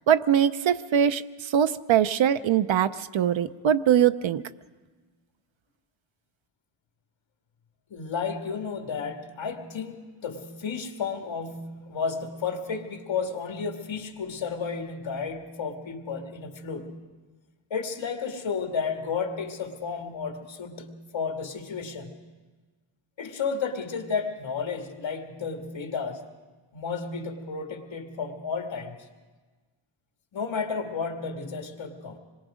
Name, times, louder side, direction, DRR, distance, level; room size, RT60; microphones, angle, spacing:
voice 1, 0.1-4.4, right 9 dB, 65° right, 12 dB, 0.7 m, -22 dB
voice 2, 7.9-16.9 17.7-22.1 23.2-26.2 26.7-28.9 30.3-32.2, left 5 dB, 65° left, 3 dB, 2.2 m, -32 dB
26.5 x 21.5 x 5.1 m, 1.4 s
wide cardioid pair, 135°, 49 cm